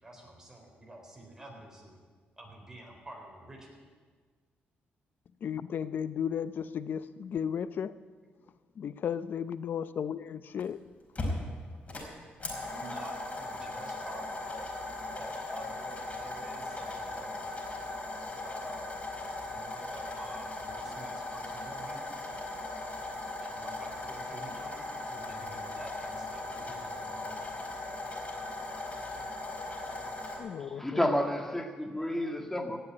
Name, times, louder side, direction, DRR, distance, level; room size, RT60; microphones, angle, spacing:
voice 1, 0.0-2.0 2.4-3.8 8.4-8.8 12.7-14.8 15.1-17.4 18.4-19.0 19.4-22.1 23.4-27.4, right 1 dB, 15° right, 3.9 m, -48 dB
voice 2, 5.4-7.9 8.8-10.8 30.4-31.0, left 8 dB, 60° left, 0.6 m, -34 dB
sound 1, 10.6-10.7 11.2-30.4, left 2 dB, 35° left, 4.6 m, -38 dB
voice 3, 30.7-32.8, left 1 dB, 10° left, 1.8 m, -30 dB
17.0 x 7.0 x 9.5 m
cardioid pair, 85°, 4 cm